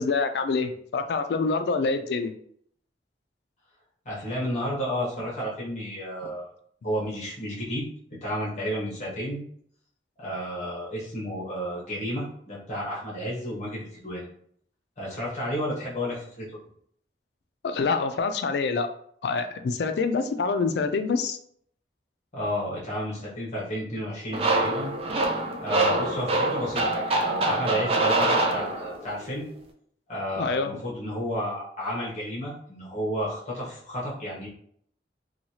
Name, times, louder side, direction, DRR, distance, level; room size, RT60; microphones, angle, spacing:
voice 1, 0.0-2.3 17.6-18.9 19.2-21.4 30.4-30.7, left 4 dB, 70° left, 8 dB, 0.3 m, -26 dB
voice 2, 4.0-6.5 6.8-9.4 10.2-14.3 15.0-16.6 22.3-24.9 25.6-29.5 30.1-34.5, equal, 40° left, -6 dB, 1.0 m, -32 dB
sound 1, 24.3-29.1, right 2 dB, 35° right, 0.4 m, -25 dB
2.9 x 2.3 x 2.8 m, 0.63 s
head